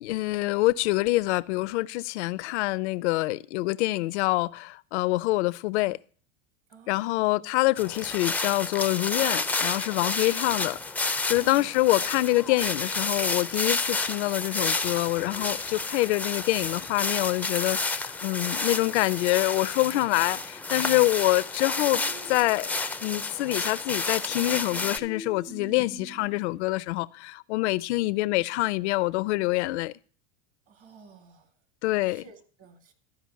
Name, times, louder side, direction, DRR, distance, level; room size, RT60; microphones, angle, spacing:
voice 1, 0.0-6.0 6.9-10.8 11.3-22.0 22.3-22.7 23.0-29.9 31.8-32.2, left 19 dB, 70° left, 0.5 m, -26 dB
voice 2, 6.7-7.1 11.3-11.8 30.7-31.6 32.0-32.9, right 6 dB, 40° right, 2.0 m, -52 dB
sound 1, 7.8-25.0, left 3 dB, 5° left, 0.4 m, -30 dB
sound 2, 21.8-23.1 24.3-26.5, left 1 dB, 90° right, 3.3 m, -45 dB
12.5 x 5.1 x 6.3 m
hypercardioid pair, 100°, 35 cm